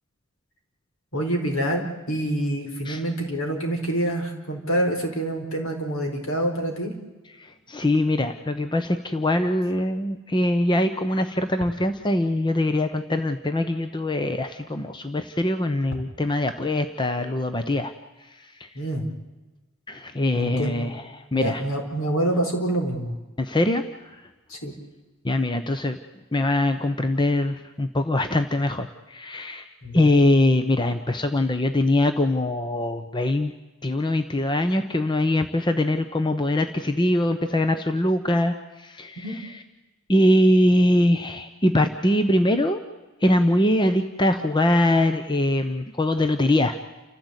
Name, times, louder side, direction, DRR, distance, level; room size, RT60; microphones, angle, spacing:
voice 1, 1.1-6.9 17.2-17.3 18.7-19.1 20.4-20.9 21.3-23.1 24.5-24.7 29.8-30.2 39.2-39.4, right 1 dB, 65° left, 3 dB, 4.4 m, -26 dB
voice 2, 7.4-17.9 18.6-18.7 19.9-21.6 23.4-23.8 25.2-26.0 26.3-29.7 29.9-33.5 33.8-39.6 40.1-42.8 43.2-46.8, left 1 dB, 20° left, 8 dB, 0.9 m, -22 dB
29.5 x 14.5 x 8.2 m, 1.2 s
head